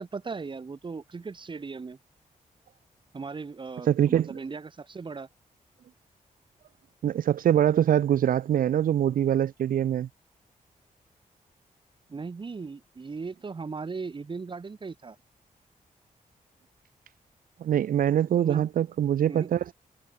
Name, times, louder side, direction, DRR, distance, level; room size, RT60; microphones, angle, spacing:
voice 1, 0.0-2.0 3.1-5.3 12.1-15.2 18.4-18.6 19.3-19.5, right 4 dB, 35° right, 2.8 m, -37 dB
voice 2, 3.9-4.4 7.0-10.1 17.6-19.7, right 10 dB, 80° right, 0.7 m, -24 dB
wide cardioid pair, 130°, 14 cm